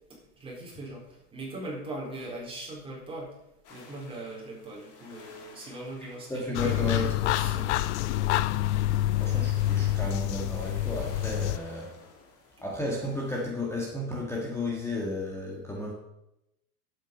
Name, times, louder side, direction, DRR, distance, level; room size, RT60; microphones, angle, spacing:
voice 1, 0.1-3.4 3.7-8.0, right 2 dB, 10° right, -3 dB, 4.4 m, -40 dB
sound 1, 3.6-13.4, left 4 dB, 30° left, 2.4 m, -52 dB
voice 2, 6.0-7.1 8.8-11.9 12.6-15.9, left 2 dB, 5° left, -3 dB, 1.6 m, -33 dB
sound 2, 6.5-11.6, left 14 dB, 45° left, 0.5 m, -27 dB
11.5 x 8.3 x 5.4 m, 0.87 s
hypercardioid pair, 135°, 49 cm